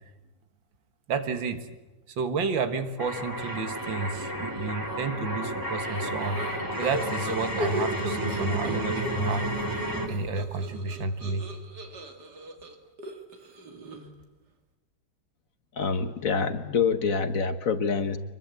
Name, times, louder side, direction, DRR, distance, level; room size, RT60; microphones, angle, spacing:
voice 1, 1.1-1.7 2.2-6.4 6.8-9.5 10.1-11.5, right 4 dB, 85° right, 9 dB, 2.4 m, -31 dB
sound 1, 3.0-10.1, right 1 dB, 10° right, 2.4 m, -32 dB
sound 2, 6.0-9.4 9.7-14.2, right 1 dB, 60° right, 2.8 m, -36 dB
voice 2, 15.8-18.2, left 5 dB, 50° left, 10 dB, 1.4 m, -26 dB
24.5 x 22.0 x 8.3 m, 1.1 s
omnidirectional pair, 2.0 m